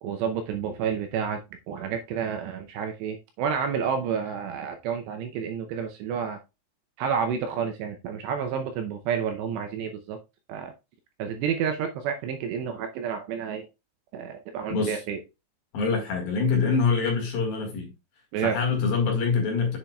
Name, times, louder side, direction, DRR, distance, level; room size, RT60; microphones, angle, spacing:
voice 1, 0.0-1.4 1.7-6.4 7.0-10.2 10.5-10.7 11.2-13.7 14.1-15.2 18.3-18.6, right 7 dB, 80° right, 2.6 m, -30 dB
voice 2, 14.7-15.0 15.7-17.9 18.4-19.8, left 5 dB, 60° left, 3.1 m, -25 dB
7.8 x 7.1 x 2.3 m
omnidirectional pair, 5.6 m